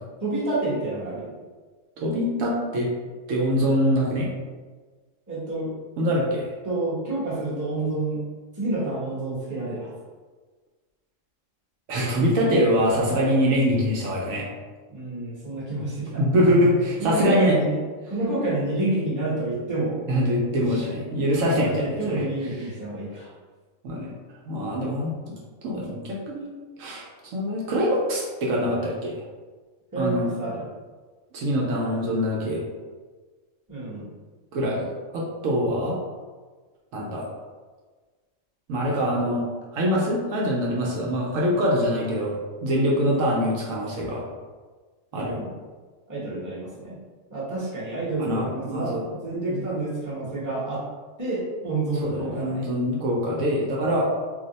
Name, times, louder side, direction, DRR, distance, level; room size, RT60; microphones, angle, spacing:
voice 1, 0.2-1.3 5.3-5.7 6.6-8.3 8.5-9.9 12.4-12.6 14.9-16.2 17.0-17.8 18.1-20.0 20.5-20.9 21.6-23.3 29.9-30.7 33.7-34.1 45.1-45.5 46.1-47.0 47.3-50.8 51.2-52.7, right 2 dB, 15° right, -9 dB, 0.8 m, -29 dB
voice 2, 2.0-2.9 3.3-4.3 6.0-6.5 11.9-14.4 16.2-17.5 20.1-22.2 23.8-24.1 24.5-25.1 25.6-26.5 26.8-27.0 27.3-29.2 30.0-30.3 31.3-32.6 34.5-34.9 35.1-36.0 36.9-37.3 38.7-39.5 39.7-44.2 45.1-45.4 48.2-49.1 49.5-49.6 52.0-54.0, equal, 75° right, -3 dB, 1.0 m, -24 dB
2.6 x 2.0 x 3.9 m, 1.4 s
omnidirectional pair, 1.4 m